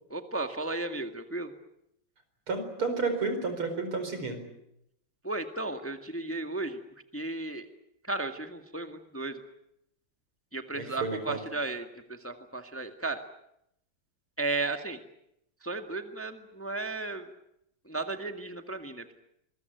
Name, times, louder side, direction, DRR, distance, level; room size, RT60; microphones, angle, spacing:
voice 1, 0.1-1.5 5.2-6.8 7.1-7.7 8.0-9.4 10.5-13.2 14.4-15.0 15.6-17.3 17.8-19.2, right 2 dB, 5° left, 7 dB, 1.5 m, -34 dB
voice 2, 2.5-4.4 10.7-11.4, right 4 dB, 75° right, 7 dB, 5.4 m, -31 dB
25.5 x 21.5 x 9.3 m, 0.78 s
omnidirectional pair, 2.4 m